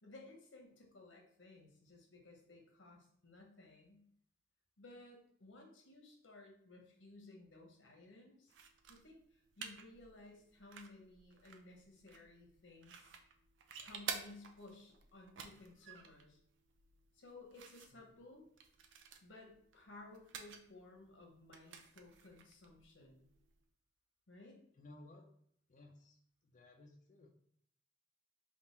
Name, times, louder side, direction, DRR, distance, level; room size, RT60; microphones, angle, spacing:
voice 1, 0.0-4.0 4.8-8.5 8.9-13.1 13.8-16.4 17.1-18.4 19.2-23.3 24.3-24.6, left 2 dB, 90° left, 1 dB, 1.0 m, -58 dB
sound 1, 8.5-23.6, right 6 dB, 80° right, 0.5 m, -52 dB
voice 2, 24.7-25.3 25.7-26.2 26.4-27.3, left 2 dB, 45° left, 0 dB, 0.4 m, -58 dB
3.5 x 2.4 x 4.2 m, 0.67 s
head